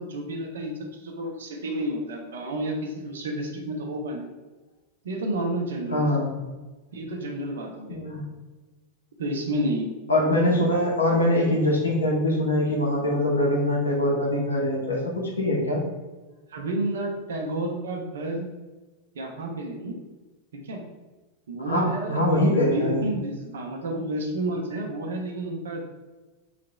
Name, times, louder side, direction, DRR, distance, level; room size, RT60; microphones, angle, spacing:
voice 1, 0.0-4.3 5.0-6.1 6.9-8.0 9.2-9.9 16.5-18.4 19.1-19.9 20.6-20.8 21.5-26.1, right 1 dB, 65° right, 2 dB, 0.7 m, -30 dB
voice 2, 5.9-6.3 7.9-8.2 10.1-15.8 21.6-23.1, left 1 dB, 75° left, -3 dB, 1.0 m, -23 dB
4.9 x 2.8 x 2.3 m, 1.2 s
figure-of-eight pair, 90°, 0 cm